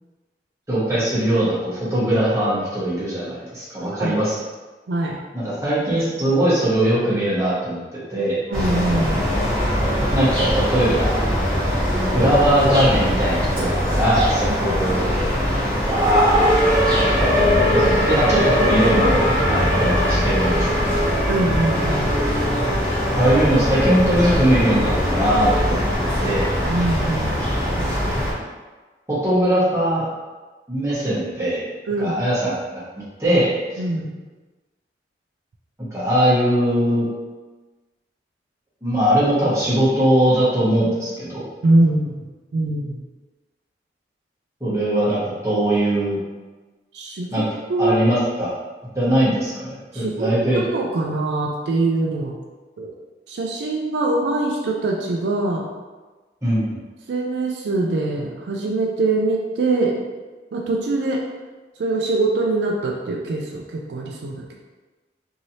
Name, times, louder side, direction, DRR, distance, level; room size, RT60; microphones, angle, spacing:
voice 1, 0.7-4.4 5.3-8.7 10.1-11.2 12.0-15.1 15.7-17.8 18.0-21.1 23.1-26.5 29.1-30.1 30.7-31.6 32.0-33.8 35.9-37.1 38.8-41.4 44.6-46.2 47.3-47.4 47.8-48.5 48.9-50.6 56.4-56.8, right 1 dB, 15° right, -10 dB, 1.1 m, -21 dB
voice 2, 4.9-5.2 8.5-9.3 21.3-22.2 26.7-27.4 27.8-28.3 31.9-32.1 33.8-34.2 41.6-42.2 42.5-43.0 46.9-48.0 49.9-52.4 52.8-52.9 53.3-55.7 57.1-60.0 60.5-61.2 61.8-64.5, right 2 dB, 75° right, 0 dB, 0.4 m, -23 dB
sound 1, 8.5-28.3, equal, 10° left, 1.1 m, -21 dB
sound 2, 17.2-25.9, left 2 dB, 30° left, 0.5 m, -31 dB
3.1 x 2.7 x 2.7 m, 1.2 s
head